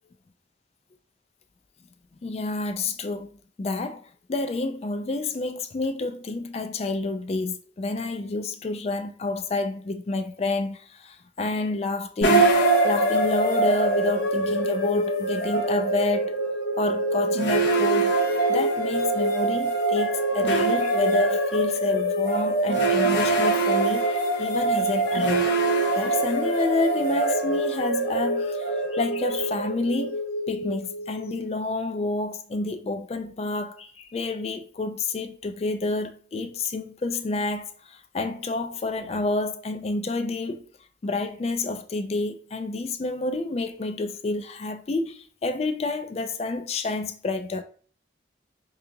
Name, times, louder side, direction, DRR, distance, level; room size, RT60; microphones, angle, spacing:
voice 1, 2.2-3.3 3.6-4.0 4.3-16.4 16.8-18.1 18.5-25.5 26.0-30.2 30.5-40.7 41.0-47.6, left 2 dB, 35° left, 0.3 m, -29 dB
sound 1, 12.2-31.3, right 2 dB, 75° left, 0.7 m, -24 dB
5.1 x 2.4 x 2.7 m
head